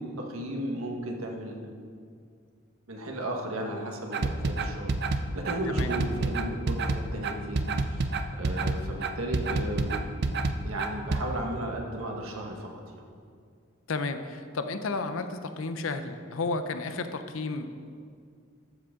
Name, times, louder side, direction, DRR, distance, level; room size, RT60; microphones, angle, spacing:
voice 1, 0.0-1.7 2.9-13.0, right 1 dB, 90° right, 1 dB, 1.4 m, -35 dB
sound 1, 4.1-11.2, right 3 dB, 50° right, 0.5 m, -28 dB
voice 2, 13.9-17.8, left 3 dB, 75° left, 9 dB, 0.6 m, -32 dB
13.0 x 7.7 x 3.7 m, 2.2 s
head